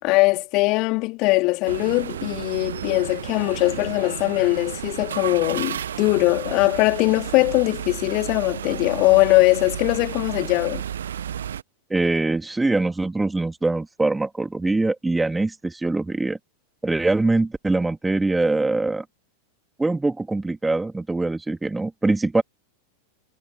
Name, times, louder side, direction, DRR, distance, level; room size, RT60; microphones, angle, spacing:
voice 1, 0.0-10.8, left 24 dB, 40° left, 2.8 m, -21 dB
sound 1, 1.6-11.6, right 9 dB, 65° right, 1.8 m, -32 dB
voice 2, 11.9-16.4 16.8-19.0 19.8-22.4, right 2 dB, 10° right, 3.2 m, -23 dB
figure-of-eight pair, 90°, 0 cm